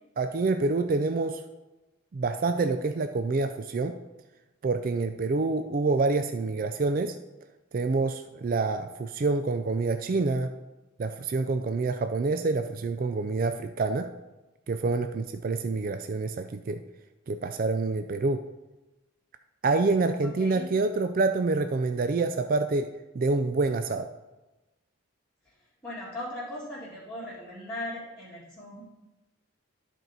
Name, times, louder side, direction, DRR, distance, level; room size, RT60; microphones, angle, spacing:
voice 1, 0.2-1.4 2.1-4.0 4.6-7.2 7.7-10.5 11.0-14.1 14.7-16.8 17.3-18.5 19.6-22.9 23.1-24.1, right 3 dB, 40° right, 8 dB, 0.3 m, -27 dB
voice 2, 20.2-20.7 25.4-25.5 25.8-28.8, left 1 dB, 10° left, -12 dB, 1.8 m, -38 dB
12.5 x 4.5 x 4.0 m, 1.1 s
head